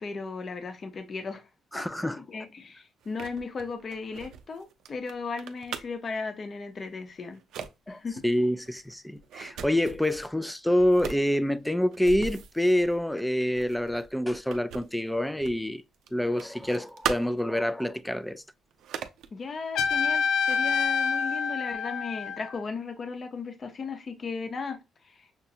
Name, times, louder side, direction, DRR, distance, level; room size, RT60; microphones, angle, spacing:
voice 1, 0.0-1.4 1.7-1.9 2.3-7.4 7.9-8.2 19.3-24.8 25.0-25.3, left 4 dB, 45° left, 0.7 m, -36 dB
voice 2, 1.7-2.2 7.9-15.8 16.1-18.4, left 1 dB, 5° left, 0.3 m, -27 dB
sound 1, 3.0-6.1 6.8-7.0 7.3-7.7 8.1-10.3 10.8-15.7 15.9-17.6 18.1-18.2 18.7-19.3 19.8-20.8, right 8 dB, 80° right, 0.4 m, -40 dB
Trumpet, 19.8-22.6, left 6 dB, 80° left, 0.4 m, -27 dB
5.8 x 2.2 x 2.6 m
cardioid pair, 90°, 0 cm